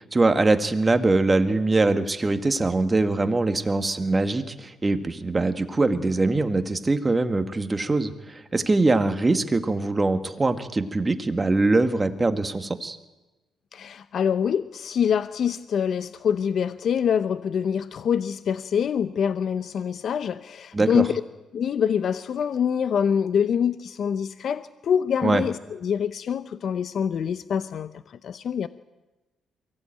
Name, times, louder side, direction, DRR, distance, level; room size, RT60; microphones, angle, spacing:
voice 1, 0.0-13.0 20.7-21.0 25.2-25.4, right 2 dB, 20° right, 1.8 m, -23 dB
voice 2, 13.7-21.1 21.5-28.7, left 7 dB, 60° left, 0.7 m, -25 dB
23.5 x 16.5 x 9.0 m
cardioid pair, 90°, 0 cm